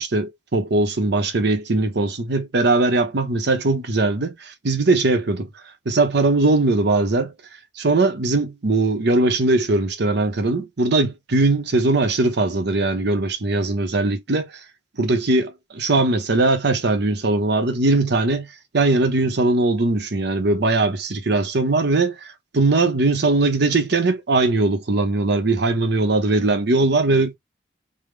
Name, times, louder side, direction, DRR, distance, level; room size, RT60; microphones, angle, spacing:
voice 1, 0.0-5.5 5.9-7.3 7.8-14.6 15.0-18.5 18.7-27.3, right 2 dB, 65° right, 0.8 m, -20 dB
3.4 x 2.1 x 3.3 m
head